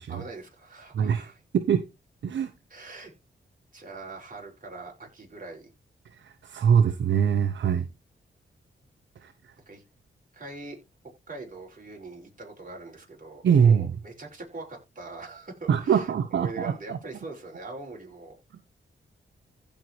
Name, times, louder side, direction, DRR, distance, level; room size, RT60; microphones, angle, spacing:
voice 1, 0.1-1.4 2.7-3.1 3.7-5.7 9.7-9.8 10.3-10.8 11.3-18.4, right 3 dB, 45° right, 5.8 m, -42 dB
voice 2, 0.9-1.9 2.2-2.5 6.1-7.9 9.2-9.5 13.4-14.0 15.7-17.0, right 7 dB, 70° right, 0.8 m, -23 dB
15.5 x 5.3 x 3.2 m
cardioid pair, 55°, 20 cm